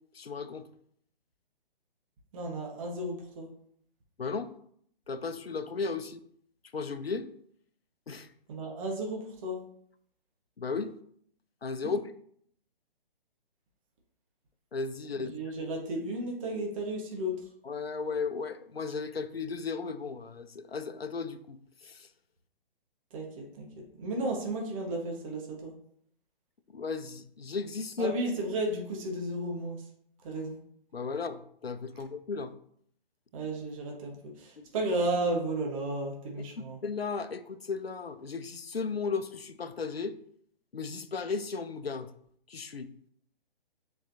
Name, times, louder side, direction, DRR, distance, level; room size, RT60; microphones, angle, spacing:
voice 1, 0.1-0.7 4.2-4.5 5.1-6.2 6.7-7.3 8.1-8.3 10.6-10.9 11.6-12.0 14.7-15.3 17.6-22.1 26.7-28.1 30.9-32.5 34.6-34.7 36.8-40.2 40.7-42.1 42.5-42.9, left 4 dB, 90° left, 11 dB, 0.7 m, -35 dB
voice 2, 2.3-3.5 8.5-9.6 11.8-11.9 15.3-17.3 23.1-23.7 23.9-25.7 28.0-29.8 30.2-30.6 33.3-36.8, right 1 dB, 35° right, 0 dB, 1.4 m, -33 dB
7.2 x 5.0 x 2.7 m, 0.66 s
figure-of-eight pair, 135°, 29 cm